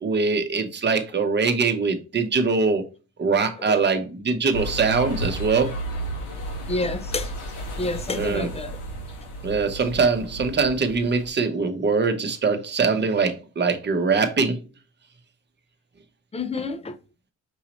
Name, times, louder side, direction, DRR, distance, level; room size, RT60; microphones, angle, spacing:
voice 1, 0.0-2.8 3.2-5.7 8.1-8.5 9.4-14.6, right 4 dB, 35° right, 0.9 m, -22 dB
sound 1, 4.5-11.3, right 1 dB, 90° left, 1.9 m, -33 dB
voice 2, 6.7-7.3 7.8-8.8 16.3-17.0, left 3 dB, 20° left, 0.6 m, -28 dB
5.5 x 2.8 x 3.0 m
cardioid pair, 90°, 30 cm